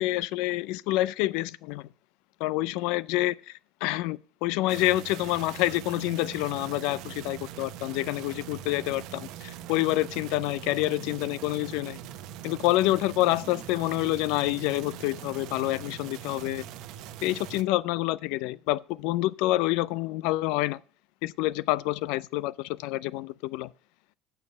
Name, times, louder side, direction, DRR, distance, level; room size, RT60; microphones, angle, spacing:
voice 1, 0.0-1.9 2.4-12.0 12.4-16.6 17.2-20.8 21.2-23.7, left 17 dB, 75° left, 0.4 m, -27 dB
sound 1, 4.7-17.6, right 11 dB, 60° right, 0.9 m, -42 dB
8.5 x 6.9 x 6.8 m
cardioid pair, 160°, 0 cm